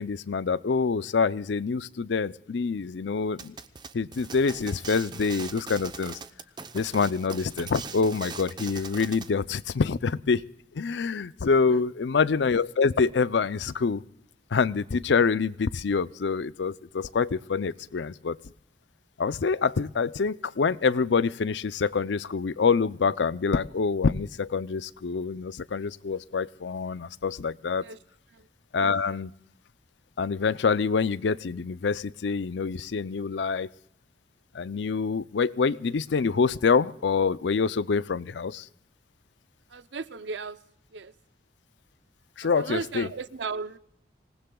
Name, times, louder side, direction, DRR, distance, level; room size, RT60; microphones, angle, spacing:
voice 1, 0.0-3.5 3.9-6.2 6.7-10.4 10.7-14.0 14.5-18.4 19.2-27.8 28.7-29.3 30.2-33.7 34.5-38.7 42.4-43.1, left 5 dB, 80° left, 17 dB, 0.5 m, -26 dB
sound 1, 3.4-9.3, right 5 dB, 25° right, 0.7 m, -41 dB
voice 2, 11.4-11.8 27.8-28.0 28.3-28.5 39.7-40.6 40.9-41.1 42.4-43.8, right 4 dB, 85° right, 15 dB, 0.6 m, -36 dB
26.0 x 19.5 x 2.3 m, 0.74 s
head